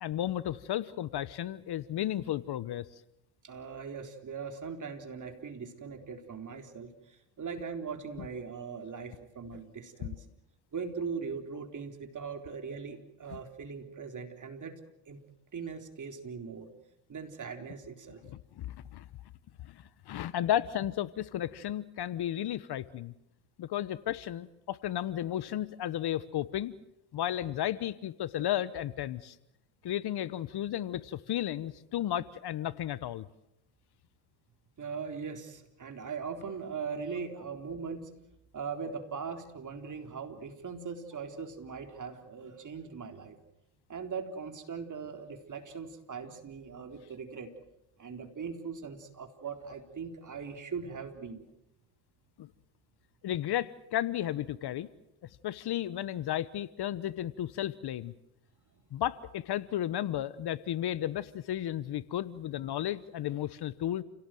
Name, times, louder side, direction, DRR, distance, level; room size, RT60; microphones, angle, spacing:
voice 1, 0.0-2.9 13.3-13.4 18.2-19.0 19.6-23.1 23.6-26.7 27.1-29.4 29.8-33.2 52.4-52.5 53.2-54.9 55.4-58.1 58.9-64.0, left 12 dB, 55° left, 17 dB, 1.1 m, -33 dB
voice 2, 3.4-10.2 10.7-15.2 15.5-16.7 17.1-18.2 34.8-38.1 38.5-43.4 43.9-47.5 48.0-51.4, right 5 dB, 40° right, 5 dB, 4.0 m, -40 dB
29.5 x 18.0 x 7.8 m, 0.86 s
supercardioid pair, 80°, 48 cm